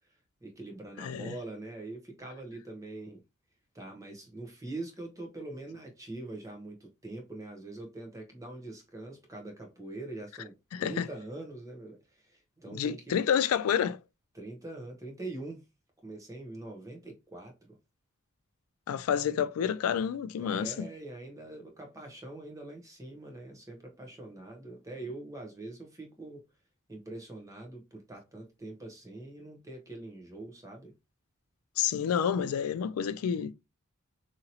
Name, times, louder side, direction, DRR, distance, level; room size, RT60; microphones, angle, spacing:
voice 1, 0.4-3.2 3.7-10.5 10.8-13.2 14.3-15.6 16.0-17.5 20.4-26.4 26.9-30.9, right 2 dB, 15° right, 0.8 m, -43 dB
voice 2, 1.0-1.3 10.7-11.1 12.7-14.0 18.9-20.7 31.8-33.5, left 8 dB, 85° left, 0.3 m, -29 dB
2.8 x 2.7 x 2.7 m
head